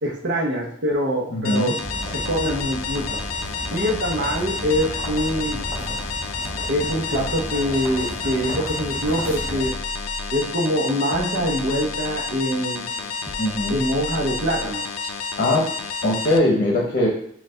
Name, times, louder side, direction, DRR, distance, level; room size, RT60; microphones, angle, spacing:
voice 1, 0.0-1.8 2.1-3.2 3.7-5.6 6.7-9.7 10.3-13.1 13.7-14.9, equal, 60° right, 0 dB, 0.8 m, -24 dB
voice 2, 1.3-1.7 13.4-13.8 15.4-15.6 16.0-17.1, left 1 dB, 45° left, -2 dB, 0.8 m, -20 dB
sound 1, 1.4-16.4, left 4 dB, 85° left, 0.4 m, -30 dB
sound 2, 1.8-9.7, equal, 15° right, 1.3 m, -34 dB
sound 3, 2.5-3.9 4.7-6.3 6.8-8.2 9.0-10.6 11.1-12.5 13.3-14.9, equal, 10° left, 0.3 m, -38 dB
4.4 x 2.3 x 3.8 m, 0.67 s
head